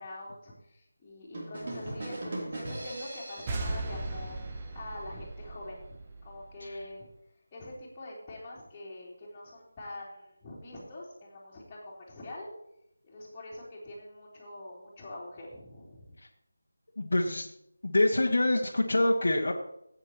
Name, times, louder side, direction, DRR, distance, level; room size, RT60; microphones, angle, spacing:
voice 1, 0.0-6.0 6.2-7.1 7.5-12.5 13.0-16.1, left 1 dB, 15° left, -10 dB, 3.0 m, -44 dB
sound 1, 1.3-5.1, right 1 dB, 40° right, 3.2 m, -41 dB
sound 2, 3.5-6.9, right 2 dB, 20° right, 1.0 m, -37 dB
voice 2, 17.0-17.5 17.8-19.5, left 1 dB, 55° left, -1 dB, 1.5 m, -26 dB
16.5 x 8.8 x 3.0 m, 0.78 s
figure-of-eight pair, 160°, 0 cm